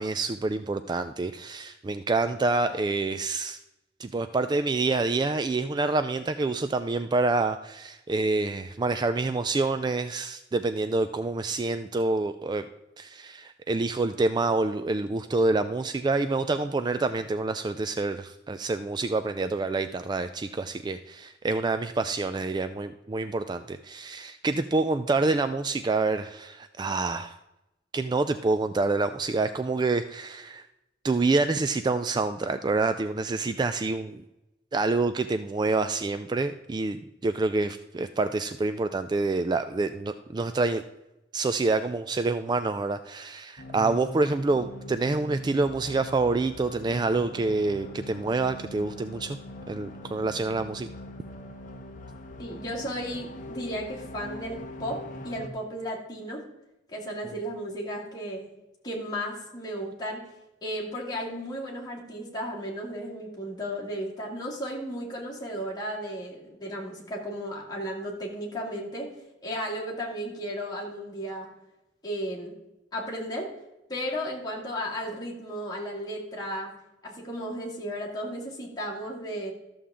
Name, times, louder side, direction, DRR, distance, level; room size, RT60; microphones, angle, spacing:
voice 1, 0.0-3.6 4.0-12.7 13.0-27.4 27.9-30.6 31.0-34.2 34.7-40.8 41.3-49.4 49.7-50.9, right 3 dB, 25° right, 10 dB, 0.3 m, -27 dB
sound 1, 43.6-55.5, left 1 dB, 45° left, 0.8 m, -41 dB
voice 2, 52.4-56.4 56.9-58.5 58.8-60.2 60.6-69.1 69.4-71.5 72.0-72.6 72.9-73.5 73.9-76.7 77.0-79.5, equal, 20° left, -4 dB, 2.5 m, -34 dB
13.0 x 7.0 x 3.7 m, 0.95 s
head